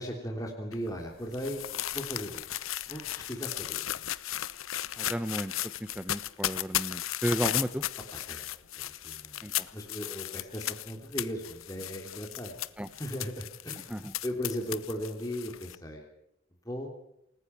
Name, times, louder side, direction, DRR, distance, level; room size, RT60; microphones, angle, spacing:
voice 1, 0.0-1.6 1.9-2.4 2.9-3.8 8.1-8.5 8.8-12.5 12.9-14.0 14.2-16.0 16.6-16.9, equal, 15° left, 0 dB, 3.3 m, -37 dB
sound 1, 0.7-15.7, left 13 dB, 90° left, 0.9 m, -35 dB
voice 2, 5.0-5.5 5.8-7.8 9.4-9.7 12.8-12.9 13.9-14.1, equal, 5° right, 9 dB, 0.8 m, -33 dB
28.5 x 20.0 x 4.7 m, 0.79 s
head